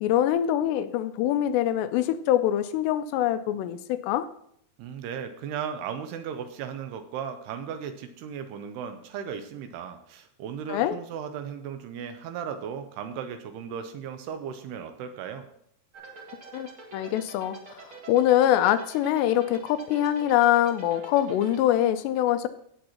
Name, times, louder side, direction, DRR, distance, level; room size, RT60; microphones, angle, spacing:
voice 1, 0.0-4.3 10.7-11.0 16.5-22.5, left 12 dB, 85° left, 12 dB, 2.6 m, -24 dB
voice 2, 4.8-15.5, right 7 dB, 80° right, 8 dB, 2.5 m, -36 dB
sound 1, 15.9-21.6, right 4 dB, 45° right, 1.7 m, -45 dB
16.5 x 7.6 x 3.0 m, 0.69 s
omnidirectional pair, 5.0 m